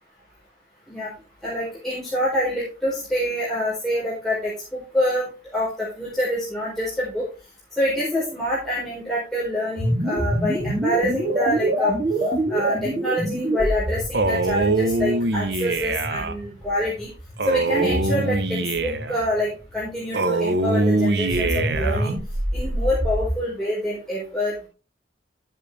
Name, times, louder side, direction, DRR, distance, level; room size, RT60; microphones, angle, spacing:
voice 1, 1.4-7.3 7.8-11.9 12.5-17.1 17.5-22.1 22.5-24.7, left 1 dB, ahead, -8 dB, 4.4 m, -26 dB
sound 1, 9.8-19.9 21.2-23.3, right 1 dB, 30° right, 3.3 m, -27 dB
Male speech man speaking, 14.1-16.3 17.4-19.2 20.1-22.1, right 2 dB, 70° right, 0.9 m, -23 dB
13.0 x 7.6 x 3.3 m, 0.32 s
head